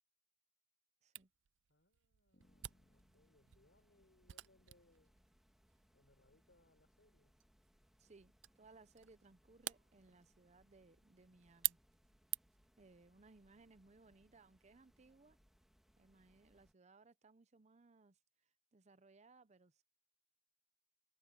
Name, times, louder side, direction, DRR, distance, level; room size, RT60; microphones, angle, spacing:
Camera, 1.1-12.7, right 17 dB, 70° right, 0.4 m, -49 dB
voice 1, 1.7-5.1 5.9-7.4, left 1 dB, 70° left, 4.5 m, -73 dB
Bass guitar, 2.3-6.3, left 1 dB, 40° left, 3.0 m, -78 dB
sound 1, 2.4-16.7, equal, ahead, 1.7 m, -74 dB
voice 2, 8.0-11.8 12.8-15.4 16.0-18.2 18.7-19.8, right 3 dB, 40° right, 0.7 m, -65 dB
head